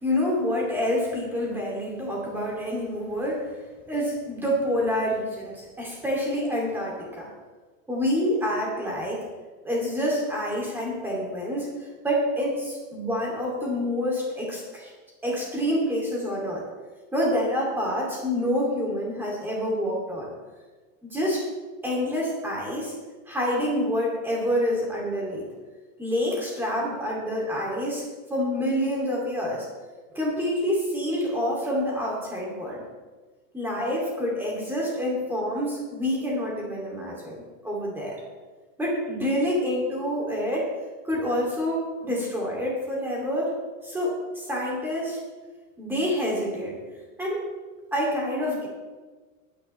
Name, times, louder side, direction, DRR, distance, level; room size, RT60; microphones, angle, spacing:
voice 1, 0.0-3.6 3.9-7.3 7.9-9.2 9.6-11.7 12.0-14.9 15.2-16.6 17.1-20.3 21.0-21.5 21.8-22.9 23.3-25.5 26.0-28.0 28.3-29.7 30.1-32.8 33.5-38.2 38.8-40.7 41.0-43.5 43.8-45.2 45.8-46.8 47.2-47.4 47.9-48.7, equal, 5° right, -3 dB, 2.5 m, -27 dB
20.5 x 10.0 x 3.2 m, 1.3 s
supercardioid pair, 175°, 41 cm